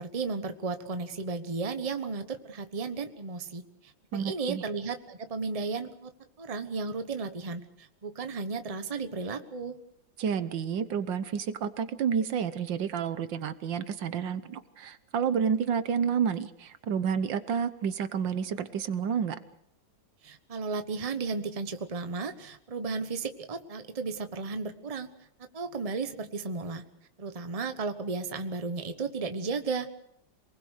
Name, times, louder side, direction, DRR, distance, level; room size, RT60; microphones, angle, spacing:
voice 1, 0.0-6.1 6.4-9.8 20.2-25.1 25.5-26.8 27.2-29.9, right 4 dB, 20° right, 8 dB, 1.1 m, -34 dB
voice 2, 4.1-4.6 10.2-19.4, right 7 dB, 75° right, 12 dB, 1.7 m, -30 dB
27.5 x 20.0 x 6.6 m, 0.76 s
omnidirectional pair, 2.0 m